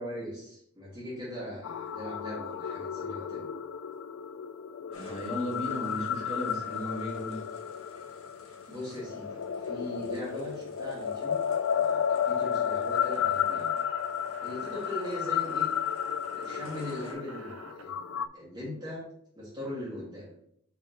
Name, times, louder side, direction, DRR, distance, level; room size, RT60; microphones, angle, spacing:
voice 1, 0.0-3.5 8.7-11.4 11.7-13.7 14.4-15.7 16.3-19.0 19.3-20.3, left 1 dB, 20° right, -8 dB, 2.1 m, -40 dB
sound 1, 1.6-18.3, left 8 dB, 65° left, 0.3 m, -32 dB
sound 2, 4.9-17.1, left 2 dB, 85° left, 1.3 m, -54 dB
voice 2, 4.9-7.5, equal, 30° left, -4 dB, 2.3 m, -35 dB
sound 3, 12.9-17.8, right 4 dB, 75° right, 0.7 m, -49 dB
5.7 x 4.6 x 4.1 m, 0.68 s
head